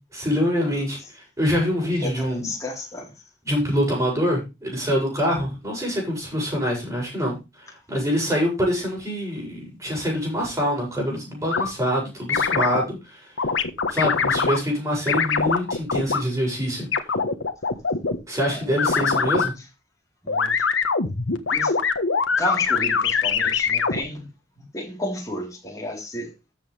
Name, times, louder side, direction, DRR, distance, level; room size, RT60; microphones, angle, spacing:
voice 1, 0.1-2.5 3.4-13.3 13.9-16.9 18.3-19.5, equal, 15° right, 7.4 m, -25 dB
voice 2, 1.8-3.2 18.4-19.6 20.2-20.7 21.5-21.8 22.4-24.3 24.6-26.3, left 1 dB, 20° left, 4.0 m, -33 dB
sound 1, 11.5-11.7 12.3-12.8 13.4-14.6 15.1-16.2 16.9-18.2 18.8-19.5 20.3-24.0, left 5 dB, 90° left, 1.4 m, -22 dB
13.5 x 7.8 x 3.4 m
head